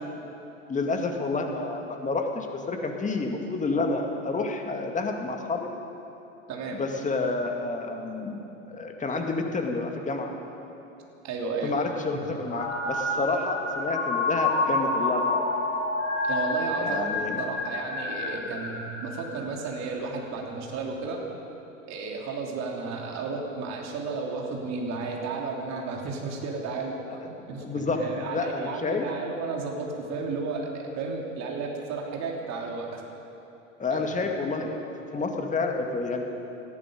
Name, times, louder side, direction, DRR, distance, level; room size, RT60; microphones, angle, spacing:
voice 1, 0.7-5.7 6.7-8.4 8.7-10.3 11.6-15.2 16.8-17.4 27.1-27.2 27.6-28.0 28.3-29.1 33.8-34.9 35.1-36.2, left 3 dB, 20° left, 3 dB, 2.0 m, -29 dB
voice 2, 6.5-6.8 11.2-11.8 12.1-12.4 16.2-21.2 21.9-27.2 27.5-33.0 33.9-34.0, right 4 dB, 40° right, 0 dB, 3.2 m, -33 dB
sound 1, 12.5-19.8, left 2 dB, 40° left, 4.2 m, -29 dB
19.0 x 13.5 x 5.2 m, 3.0 s
hypercardioid pair, 85°, 40 cm